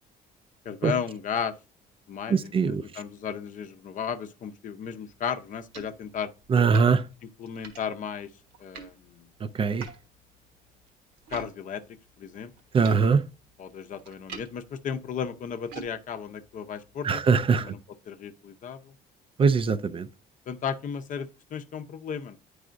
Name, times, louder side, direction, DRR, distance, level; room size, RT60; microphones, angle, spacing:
voice 1, 0.6-1.5 2.1-6.3 7.4-8.3 8.6-9.3 11.3-11.8 12.2-12.5 13.6-17.2 17.5-17.8 18.1-18.9 20.5-22.4, left 7 dB, 50° left, 0.6 m, -34 dB
voice 2, 2.3-2.8 6.5-7.0 9.5-9.9 12.7-13.2 17.0-17.7 19.4-20.1, right 5 dB, 30° right, 0.4 m, -22 dB
sound 1, 5.1-11.5 11.8-17.7, right 5 dB, 80° right, 1.2 m, -49 dB
9.1 x 4.8 x 2.5 m
cardioid pair, 110°, 17 cm